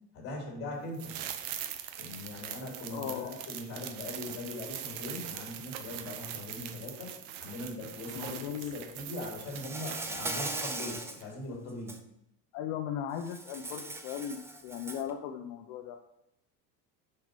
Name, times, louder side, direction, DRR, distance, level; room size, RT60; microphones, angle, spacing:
voice 1, 0.1-1.2 2.0-7.1 7.4-8.4 8.7-12.0, left 2 dB, 40° left, -2 dB, 3.3 m, -41 dB
sound 1, 0.9-10.9 11.2-11.3, right 10 dB, 90° right, 0.9 m, -42 dB
voice 2, 2.9-3.4 8.1-8.9 12.5-16.0, left 9 dB, 70° left, 4 dB, 0.7 m, -37 dB
Insect, 9.5-11.2 11.7-12.0 13.2-15.1, right 2 dB, 5° right, 0.4 m, -39 dB
6.4 x 5.7 x 5.2 m, 0.83 s
cardioid pair, 170°, 36 cm